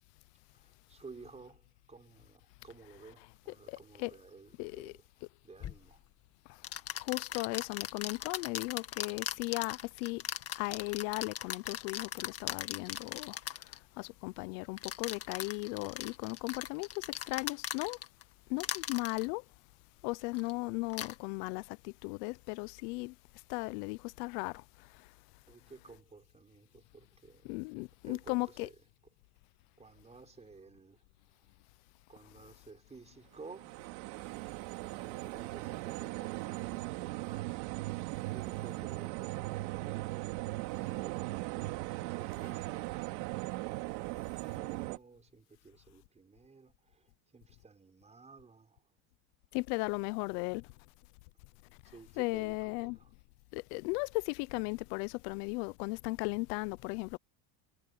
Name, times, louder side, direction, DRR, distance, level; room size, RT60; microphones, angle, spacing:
voice 1, 0.5-6.1 25.5-27.6 28.1-28.8 29.8-31.0 31.4-31.5 32.1-33.9 34.9-37.7 38.3-41.3 42.0-43.5 44.1-48.9 51.8-53.1, right 4 dB, 15° right, 5.2 m, -55 dB
voice 2, 3.7-4.1 4.6-4.9 7.0-10.2 10.5-13.4 14.0-18.0 18.5-19.4 20.0-23.1 23.5-24.6 27.4-28.7 49.5-50.7 52.2-53.0 53.5-57.2, left 26 dB, 85° left, 0.7 m, -36 dB
sound 1, 5.6-5.8 6.6-13.8 14.8-18.2 18.6-19.3 20.3-20.5 20.9-21.1, left 10 dB, 30° left, 1.8 m, -39 dB
sound 2, 33.4-45.0, right 21 dB, 85° right, 2.3 m, -38 dB
cardioid pair, 155°, 46 cm